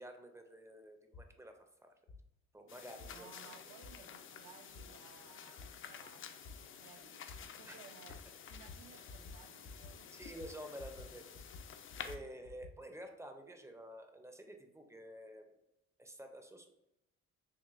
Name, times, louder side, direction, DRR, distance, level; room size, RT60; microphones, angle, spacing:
voice 1, 0.0-1.5 1.8-1.9 2.5-3.3 7.7-7.8 8.9-9.0 10.1-11.3 12.0-15.5 16.0-16.8, right 1 dB, 10° right, 5 dB, 0.5 m, -50 dB
sound 1, 1.1-1.3 2.1-2.2 3.0-3.1 3.8-3.9 4.7-4.9 5.6-5.7 6.4-6.6 7.3-7.4 8.1-8.2 8.5-8.8 9.1-9.4 9.6-9.9 10.2-11.1 11.3-12.7, left 4 dB, 85° left, 1.1 m, -51 dB
sound 2, 2.7-12.2, left 7 dB, 45° left, 0.4 m, -51 dB
voice 2, 3.1-6.5 6.8-10.1, right 7 dB, 60° right, 7 dB, 0.5 m, -60 dB
6.1 x 2.1 x 2.4 m, 0.90 s
cardioid pair, 90°, 30 cm